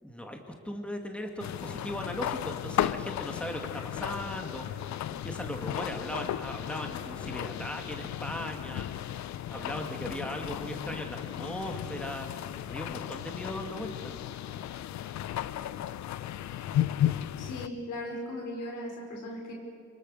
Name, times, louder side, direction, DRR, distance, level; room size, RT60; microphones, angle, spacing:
voice 1, 0.0-4.8 5.1-9.0 9.5-12.3 12.7-14.1, equal, 5° left, 3 dB, 2.6 m, -38 dB
sound 1, 1.4-17.7, left 11 dB, 65° left, 0.7 m, -35 dB
voice 2, 17.4-19.5, left 1 dB, 80° left, 1 dB, 5.5 m, -38 dB
25.5 x 23.5 x 6.8 m, 2.4 s
cardioid pair, 90°, 30 cm